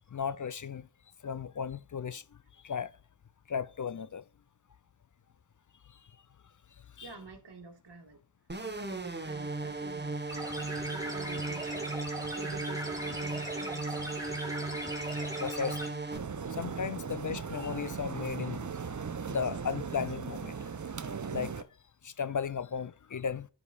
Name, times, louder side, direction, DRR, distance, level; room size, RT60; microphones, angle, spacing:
voice 1, 0.1-0.9 1.2-2.2 2.6-2.9 3.5-4.2 7.0-7.1 15.4-15.8 16.6-18.6 19.3-20.5 21.3-21.7 22.0-23.5, left 6 dB, 45° left, 0.5 m, -35 dB
voice 2, 7.0-8.2 8.6-10.2 10.9-11.9 12.3-14.1, right 4 dB, 70° right, 2.2 m, -48 dB
sound 1, 8.5-16.2, right 3 dB, 25° right, 1.3 m, -36 dB
sound 2, 10.3-15.9, right 1 dB, 5° right, 2.3 m, -40 dB
sound 3, 16.1-21.6, right 6 dB, 45° right, 0.8 m, -38 dB
12.0 x 5.1 x 2.5 m
cardioid pair, 45°, 43 cm